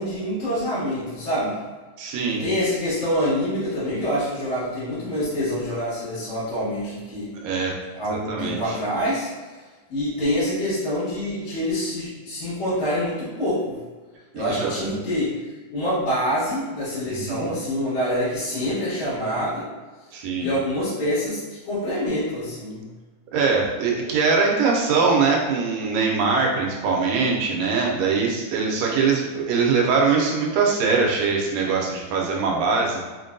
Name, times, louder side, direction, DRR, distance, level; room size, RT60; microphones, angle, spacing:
voice 1, 0.0-1.6 2.4-7.3 7.9-9.3 9.9-13.8 14.3-15.4 15.7-19.7 20.4-22.9, equal, 85° left, -14 dB, 2.9 m, -26 dB
voice 2, 2.0-2.4 7.4-7.7 8.1-8.8 14.3-14.9 17.1-17.5 20.1-20.5 23.3-33.1, right 4 dB, 80° right, -1 dB, 1.8 m, -22 dB
5.7 x 2.2 x 2.5 m, 1.3 s
omnidirectional pair, 3.3 m